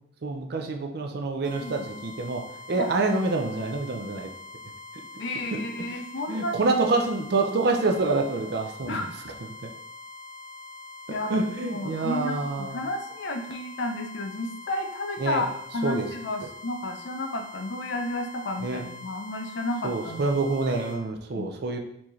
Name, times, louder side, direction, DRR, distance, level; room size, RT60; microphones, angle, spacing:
voice 1, 0.2-4.3 5.5-5.6 5.9-6.0 6.3-9.0 9.6-9.7 11.1-12.8 15.2-15.4 15.8-16.1 18.6-18.8 19.8-21.8, right 3 dB, 50° right, 3 dB, 0.5 m, -27 dB
sound 1, 1.4-21.0, left 3 dB, 80° right, 1.2 m, -44 dB
voice 2, 5.2-6.6 8.9-9.1 11.1-15.5 15.7-20.2 21.3-21.5, left 2 dB, 60° left, 5 dB, 0.5 m, -32 dB
4.4 x 2.8 x 3.1 m, 0.74 s
head